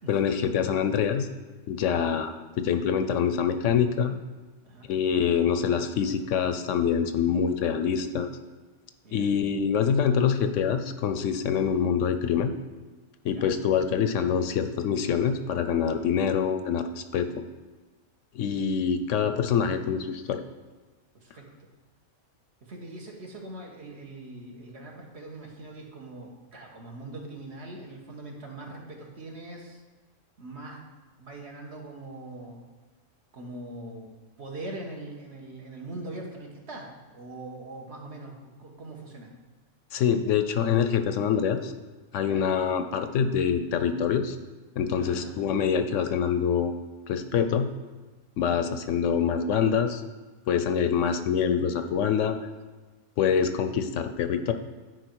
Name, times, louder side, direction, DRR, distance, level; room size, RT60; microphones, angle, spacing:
voice 1, 0.1-1.3 1.7-4.2 4.9-8.3 9.1-12.5 13.2-17.3 18.3-20.4 39.9-41.7 42.1-44.4 44.8-46.7 47.1-47.7 48.4-50.0 50.5-52.3 53.2-54.5, left 7 dB, 70° left, 8 dB, 0.9 m, -25 dB
voice 2, 9.0-9.4 13.3-13.5 21.1-21.7 22.6-29.8 30.4-30.8 31.2-32.6 33.3-34.1 34.4-39.3 42.2-42.4 44.9-45.6, right 2 dB, 55° right, 0 dB, 1.5 m, -42 dB
10.0 x 4.6 x 4.6 m, 1.3 s
omnidirectional pair, 1.4 m